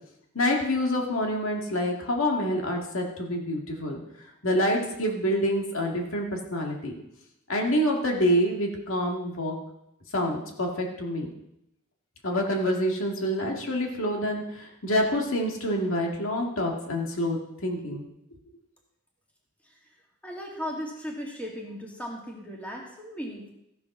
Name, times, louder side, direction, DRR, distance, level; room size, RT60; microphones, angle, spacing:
voice 1, 0.3-4.0 4.4-6.9 7.5-9.5 10.1-11.3 12.2-18.0, equal, 65° left, 1 dB, 2.0 m, -27 dB
voice 2, 20.2-23.5, equal, 5° left, -2 dB, 2.1 m, -37 dB
15.0 x 7.0 x 6.0 m, 0.82 s
head